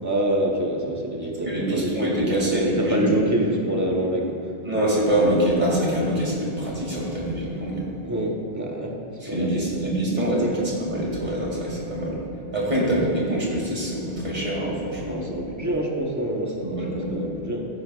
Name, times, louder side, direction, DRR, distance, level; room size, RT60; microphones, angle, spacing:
voice 1, 0.0-4.4 8.0-8.9 9.3-10.7 12.9-13.0 15.0-17.7, right 1 dB, 15° right, -1 dB, 1.0 m, -26 dB
voice 2, 1.5-3.1 4.6-7.8 9.2-12.2 12.5-15.3 16.6-17.1, right 1 dB, 45° right, -4 dB, 2.5 m, -25 dB
15.0 x 8.7 x 2.4 m, 2.5 s
omnidirectional pair, 1.1 m